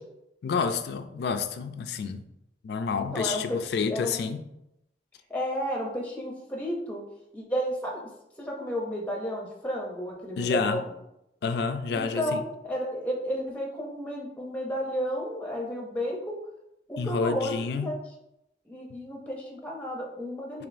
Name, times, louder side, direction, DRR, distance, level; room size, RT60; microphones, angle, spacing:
voice 1, 0.4-2.3 2.6-4.4 10.4-10.9 11.4-12.4 17.0-17.9, left 5 dB, 65° left, 0.3 m, -29 dB
voice 2, 2.9-4.3 5.3-7.0 7.3-8.1 8.4-10.9 11.9-16.4 16.9-17.9 18.7-20.7, equal, 10° left, 0.5 m, -32 dB
4.9 x 3.0 x 2.5 m
head